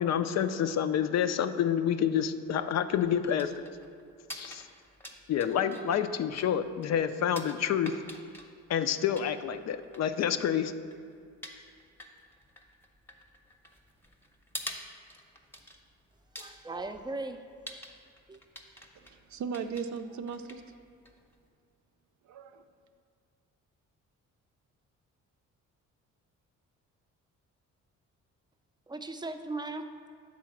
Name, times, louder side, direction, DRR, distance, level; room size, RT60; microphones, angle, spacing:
voice 1, 0.0-3.5 4.3-4.6 5.3-7.9 8.7-10.7, left 9 dB, 55° left, 10 dB, 0.4 m, -28 dB
sound 1, 2.5-21.5, equal, 5° left, 0.8 m, -49 dB
voice 2, 16.4-17.4 18.3-18.4 28.9-29.9, right 2 dB, 15° right, 7 dB, 0.5 m, -38 dB
voice 3, 18.9-20.6 22.2-22.6, right 6 dB, 65° right, 9 dB, 0.5 m, -37 dB
7.4 x 3.9 x 5.8 m, 2.3 s
cardioid pair, 85°, 32 cm